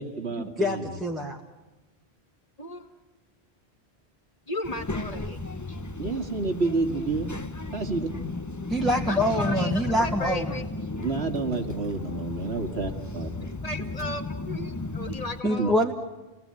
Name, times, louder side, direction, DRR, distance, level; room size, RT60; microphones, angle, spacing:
voice 1, 0.0-1.0 6.0-7.3 7.7-8.1 11.0-13.3 15.6-15.7, right 3 dB, 75° right, 4 dB, 2.5 m, -29 dB
voice 2, 0.6-1.4 8.7-10.6 15.4-15.9, equal, ahead, 0 dB, 1.6 m, -25 dB
voice 3, 4.5-5.4 5.7-5.8 9.1-10.7 13.6-15.8, left 1 dB, 35° left, 5 dB, 2.1 m, -35 dB
Child speech kid speaking, 4.6-15.4, left 3 dB, 20° left, 0.8 m, -34 dB
29.0 x 18.5 x 9.0 m, 1.1 s
omnidirectional pair, 1.1 m